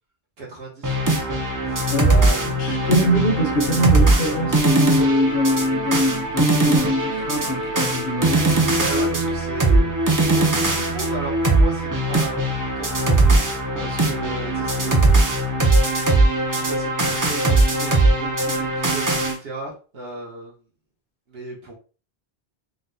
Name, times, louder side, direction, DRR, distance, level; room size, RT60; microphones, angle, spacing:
voice 1, 0.4-1.3 1.7-2.5 8.8-9.9 10.3-13.4 13.8-15.0 15.9-16.2 16.5-20.5 21.3-21.7, right 2 dB, 75° right, 1.2 m, -35 dB
sound 1, 0.8-19.3, right 2 dB, 30° right, 0.3 m, -20 dB
voice 2, 2.4-8.8, equal, 65° left, 0.9 m, -22 dB
3.9 x 2.0 x 2.6 m
omnidirectional pair, 1.0 m